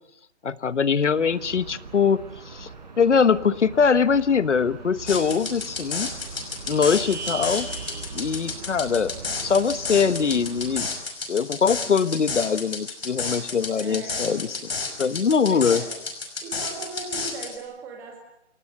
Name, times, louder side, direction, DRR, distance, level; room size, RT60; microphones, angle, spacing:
voice 1, 0.4-2.7 3.0-6.1 6.7-7.7 8.1-9.1 9.4-10.9 11.3-14.5 15.0-15.8, left 6 dB, 80° left, 15 dB, 1.3 m, -22 dB
sound 1, 1.1-10.9, right 5 dB, 35° right, 5.0 m, -39 dB
sound 2, 5.1-17.6, left 4 dB, 55° left, 5.6 m, -32 dB
voice 2, 13.7-14.2 15.5-15.9 16.4-18.2, right 4 dB, 5° right, 1 dB, 2.2 m, -38 dB
27.5 x 19.0 x 8.0 m, 0.79 s
hypercardioid pair, 180°, 35 cm